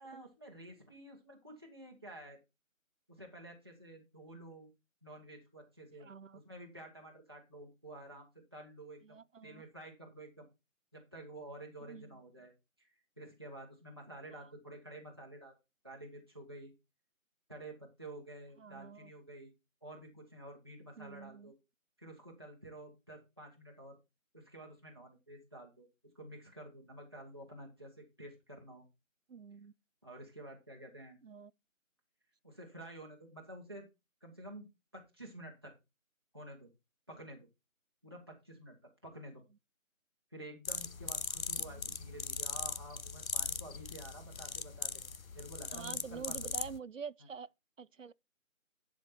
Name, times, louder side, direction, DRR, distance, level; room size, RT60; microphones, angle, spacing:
voice 1, 0.0-2.4 3.1-4.7 5.0-9.2 9.4-10.5 10.9-12.5 12.8-12.9 13.2-15.5 15.8-16.7 17.5-19.5 19.8-21.5 22.0-24.0 24.3-25.9 26.1-28.8 30.0-31.2 32.4-33.8 34.2-34.6 34.9-35.7 36.3-36.7 37.1-37.5 38.0-38.8 39.0-39.4 40.3-45.0 45.3-46.5, right 1 dB, 20° right, 1.2 m, -50 dB
voice 2, 6.0-6.4 9.0-9.6 11.8-12.2 14.3-14.5 18.6-19.1 21.0-21.5 29.3-29.7 31.2-31.5 41.6-41.9 45.7-47.5 47.8-48.1, right 6 dB, 65° right, 0.5 m, -47 dB
sound 1, 40.7-46.8, left 5 dB, 75° left, 0.8 m, -39 dB
11.0 x 5.0 x 4.3 m
figure-of-eight pair, 175°, 41 cm